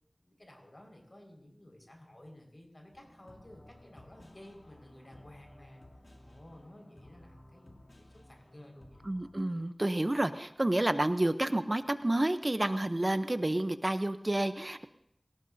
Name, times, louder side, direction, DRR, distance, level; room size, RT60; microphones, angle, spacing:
voice 1, 0.2-5.8 6.2-9.1, left 1 dB, 50° left, 1 dB, 5.0 m, -54 dB
sound 1, 2.9-9.3, left 1 dB, 80° left, 2.4 m, -56 dB
voice 2, 9.1-14.9, right 1 dB, 45° right, 10 dB, 0.7 m, -30 dB
23.5 x 18.0 x 2.7 m, 0.74 s
wide cardioid pair, 45°, 0 cm